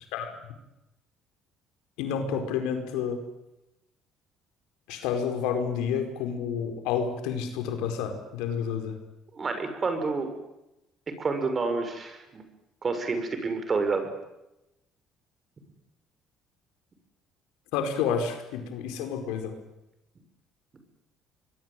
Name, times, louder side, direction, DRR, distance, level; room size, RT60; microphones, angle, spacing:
voice 1, 2.0-3.2 4.9-9.0 17.7-19.5, left 7 dB, 90° left, 6 dB, 4.7 m, -29 dB
voice 2, 9.4-10.3 11.2-12.4 12.8-14.1, right 4 dB, 35° right, 8 dB, 6.5 m, -29 dB
25.5 x 22.5 x 9.2 m, 0.93 s
cardioid pair, 95°, 0 cm